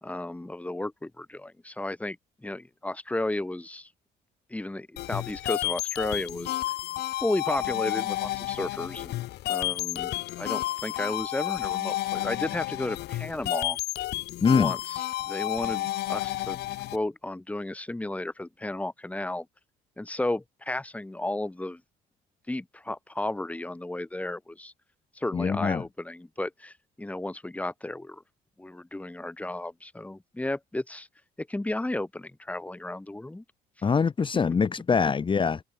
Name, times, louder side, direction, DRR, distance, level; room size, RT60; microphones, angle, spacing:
voice 1, 0.0-2.2 2.4-3.9 4.5-6.6 7.2-9.2 9.5-10.1 10.4-13.8 14.5-16.6 16.9-19.5 20.0-21.8 22.5-24.7 25.2-28.2 28.6-31.1 31.4-33.4, left 1 dB, 10° left, 2.4 m, -33 dB
sound 1, 5.0-17.0, left 16 dB, 75° left, 3.8 m, -31 dB
voice 2, 14.4-14.7 25.3-25.8 33.8-35.6, left 5 dB, 30° left, 1.6 m, -23 dB
cardioid pair, 110°, 17 cm